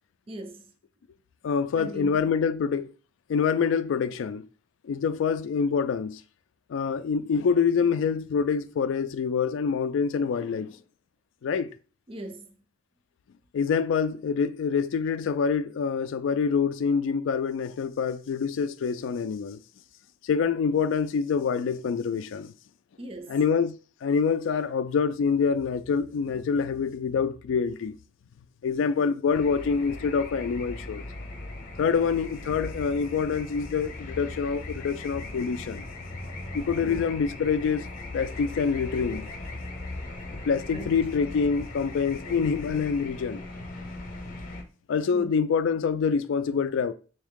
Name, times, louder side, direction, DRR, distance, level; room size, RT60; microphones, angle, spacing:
voice 1, 0.3-0.7 1.7-2.3 12.1-12.6 23.0-23.4 36.8-37.1 40.7-41.0 43.8-43.9 45.1-45.3, right 1 dB, 30° right, 0.5 m, -40 dB
voice 2, 1.4-2.9 3.3-4.5 4.8-6.2 6.7-10.8 11.4-11.7 13.5-19.6 20.2-22.5 23.3-23.8 24.0-28.0 28.6-31.0 31.8-35.8 36.5-37.9 38.1-39.3 40.3-43.4 44.9-46.9, left 6 dB, 80° left, 0.3 m, -26 dB
sound 1, 29.3-44.6, left 2 dB, 45° left, 0.7 m, -39 dB
3.5 x 2.8 x 3.6 m
head